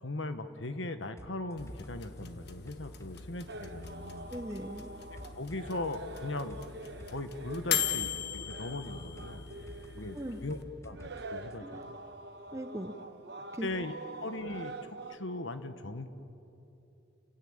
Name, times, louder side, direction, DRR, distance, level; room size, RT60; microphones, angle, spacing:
voice 1, 0.0-4.3 5.3-6.6 7.0-9.5 9.9-10.6 10.8-12.0 13.6-13.9 14.2-16.1, left 2 dB, 85° left, 10 dB, 1.4 m, -39 dB
sound 1, 1.2-11.2 11.5-11.6, equal, 15° left, 1.1 m, -53 dB
sound 2, 1.6-10.6, left 9 dB, 60° left, 1.3 m, -39 dB
sound 3, 3.5-15.2, right 2 dB, 60° right, 1.3 m, -46 dB
voice 2, 4.3-4.9 10.1-10.4 11.6-11.8 12.5-13.0 13.5-13.7, right 1 dB, 15° right, 6 dB, 0.9 m, -39 dB
29.5 x 16.5 x 8.8 m, 2.9 s
head